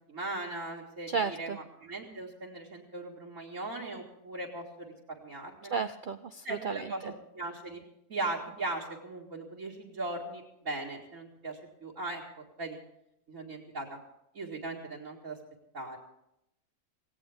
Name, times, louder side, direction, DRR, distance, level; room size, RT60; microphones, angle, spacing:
voice 1, 0.1-5.8 6.4-7.8 8.1-12.8 13.3-14.0 14.3-15.4 15.7-16.0, right 2 dB, 55° right, 0 dB, 2.4 m, -39 dB
voice 2, 1.1-1.6 5.7-7.1, right 5 dB, 70° right, 10 dB, 0.4 m, -33 dB
17.5 x 17.0 x 3.6 m, 0.80 s
omnidirectional pair, 1.6 m